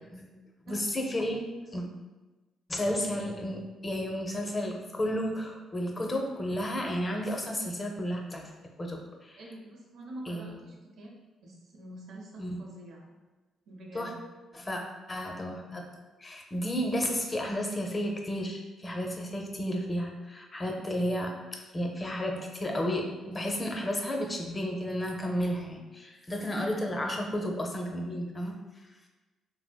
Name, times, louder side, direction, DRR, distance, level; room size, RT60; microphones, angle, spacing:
voice 1, 0.7-1.4 1.7-1.8 2.7-8.4 8.8-9.4 10.3-10.6 12.4-12.6 13.9-14.1 14.5-14.8 15.1-15.8 16.2-28.5, equal, 25° left, 1 dB, 0.5 m, -32 dB
voice 2, 9.4-11.2 11.4-13.1 13.7-14.2 26.5-26.9, right 1 dB, 75° right, -2 dB, 0.7 m, -45 dB
3.4 x 2.5 x 2.2 m, 1.2 s
cardioid pair, 90°, 0 cm